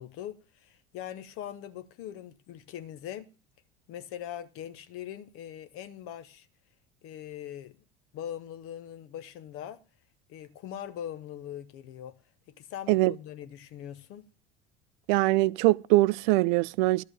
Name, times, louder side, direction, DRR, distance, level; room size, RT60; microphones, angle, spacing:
voice 1, 0.0-3.3 3.9-6.5 7.0-7.8 8.1-9.8 10.3-12.2 12.5-14.3, left 10 dB, 45° left, 1.0 m, -41 dB
voice 2, 15.1-17.0, right 19 dB, 50° right, 0.4 m, -22 dB
12.5 x 4.9 x 8.8 m
figure-of-eight pair, 70°, 30 cm